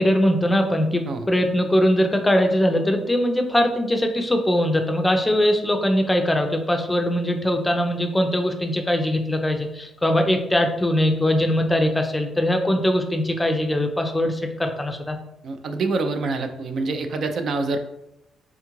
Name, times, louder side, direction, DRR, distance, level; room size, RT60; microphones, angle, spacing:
voice 1, 0.0-15.2, left 1 dB, 15° left, 4 dB, 0.4 m, -21 dB
voice 2, 15.4-17.8, right 3 dB, 60° right, 6 dB, 0.4 m, -26 dB
3.5 x 2.4 x 3.0 m, 0.84 s
cardioid pair, 90°, 0 cm